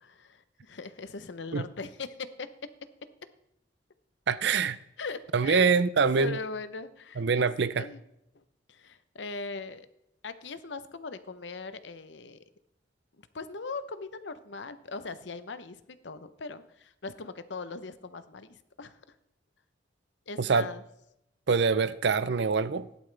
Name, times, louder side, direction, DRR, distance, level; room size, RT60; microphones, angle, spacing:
voice 1, 0.0-2.7 5.0-5.7 6.2-8.0 8.7-9.9 10.2-12.4 13.2-19.0 20.3-20.8, left 4 dB, 70° left, 0.8 m, -40 dB
voice 2, 4.3-4.8 5.3-6.4 7.2-7.9 20.4-20.7 21.5-22.9, right 5 dB, 65° right, 0.5 m, -25 dB
16.0 x 11.5 x 3.4 m
head